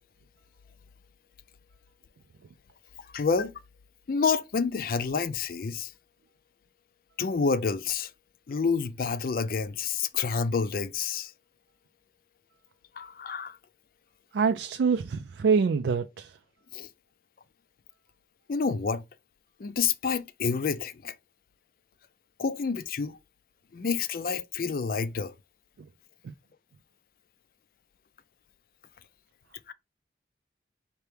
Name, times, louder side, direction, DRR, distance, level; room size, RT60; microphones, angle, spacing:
voice 1, 3.1-3.5 4.1-5.9 7.2-8.1 8.5-11.3 13.0-13.6 16.7-16.9 18.5-19.0 19.6-21.2 22.4-23.2 23.7-25.3 29.7-29.8, left 5 dB, 55° left, 0.4 m, -28 dB
voice 2, 14.3-16.4 25.8-25.9 26.2-26.3, right 5 dB, 85° right, 0.4 m, -25 dB
4.5 x 2.9 x 3.3 m
head